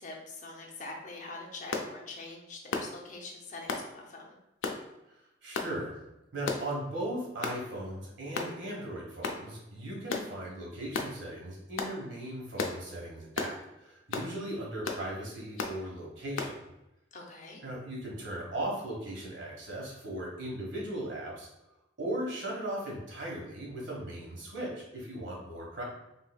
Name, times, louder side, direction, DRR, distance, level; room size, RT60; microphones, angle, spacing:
voice 1, 0.0-4.4 17.1-17.6, left 2 dB, 40° left, 0 dB, 0.6 m, -44 dB
sound 1, 1.7-1.9 2.7-2.9 3.7-3.9 4.6-4.8 5.5-5.7 6.5-6.7 7.4-7.6 8.3-8.5 9.2-9.4 10.1-10.3 10.9-11.1 11.8-12.0 12.6-12.8 13.4-13.6 14.1-14.3 14.8-15.0 15.6-15.8 16.4-16.5, left 4 dB, 90° left, 0.4 m, -33 dB
voice 2, 5.1-5.9 6.3-16.6 17.6-21.5 22.0-25.8, right 1 dB, 70° right, -3 dB, 1.3 m, -38 dB
3.8 x 3.3 x 2.3 m, 0.93 s
head